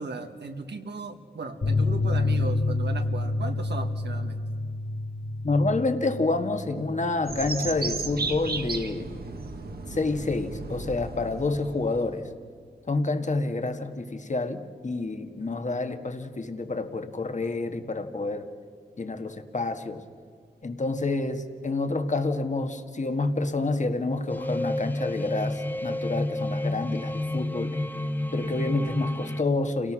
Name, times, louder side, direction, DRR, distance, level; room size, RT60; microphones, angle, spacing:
voice 1, 0.0-4.4, right 3 dB, 80° right, 5 dB, 1.7 m, -36 dB
sound 1, 1.6-8.7 9.0-9.1 9.4-9.5, left 2 dB, 65° left, 3.8 m, -29 dB
voice 2, 5.4-9.1 9.9-12.2 12.9-18.5 19.0-20.0 20.6-27.8 28.3-29.9, left 3 dB, 45° left, 7 dB, 1.6 m, -28 dB
sound 2, 7.3-12.2, right 3 dB, 65° right, 1.6 m, -34 dB
sound 3, 24.3-29.4, left 1 dB, 10° left, 0.7 m, -30 dB
29.0 x 18.0 x 6.2 m, 2.2 s
wide cardioid pair, 85°, 18 cm